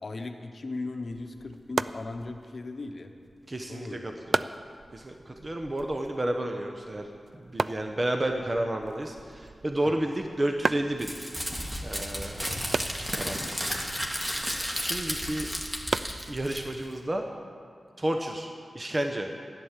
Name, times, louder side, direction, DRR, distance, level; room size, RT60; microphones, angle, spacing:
voice 1, 0.0-3.1 3.7-4.0 9.8-10.0, left 3 dB, 55° left, 5 dB, 1.0 m, -37 dB
sound 1, 1.1-16.9, right 3 dB, 55° right, 0.3 m, -37 dB
voice 2, 3.5-4.4 4.9-7.1 7.3-11.1 11.8-12.5 13.2-13.7 14.0-14.2 14.7-15.5 16.3-17.2 18.0-19.3, right 1 dB, 35° right, 4 dB, 0.9 m, -31 dB
Crumpling crinkling, 11.0-16.9, equal, 10° right, 2.0 m, -33 dB
11.0 x 10.0 x 7.4 m, 2.3 s
cardioid pair, 55°, 0 cm